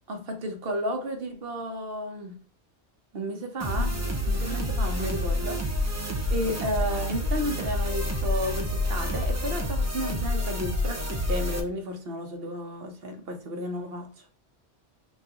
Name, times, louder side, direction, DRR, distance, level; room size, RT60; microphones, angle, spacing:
voice 1, 0.1-2.4 3.1-4.0 4.3-5.7 6.3-14.1, equal, 55° right, 1.0 m, -32 dB
sound 1, 3.6-11.6, left 1 dB, 20° right, 0.4 m, -28 dB
5.5 x 2.5 x 2.9 m
omnidirectional pair, 1.3 m